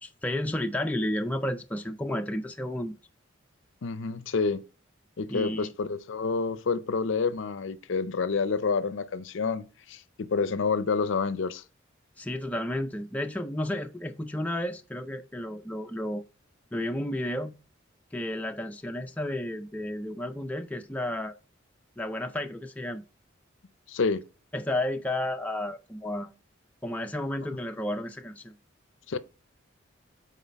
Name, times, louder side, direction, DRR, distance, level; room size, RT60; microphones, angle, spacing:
voice 1, 0.0-2.9 5.3-5.7 12.2-16.2 16.7-17.5 18.1-21.3 22.0-23.0 24.5-26.3 26.8-28.5, left 1 dB, 5° left, 0.3 m, -32 dB
voice 2, 3.8-4.6 5.2-11.6 23.9-24.2 29.1-29.2, left 4 dB, 65° left, 0.5 m, -28 dB
7.2 x 4.2 x 4.0 m
head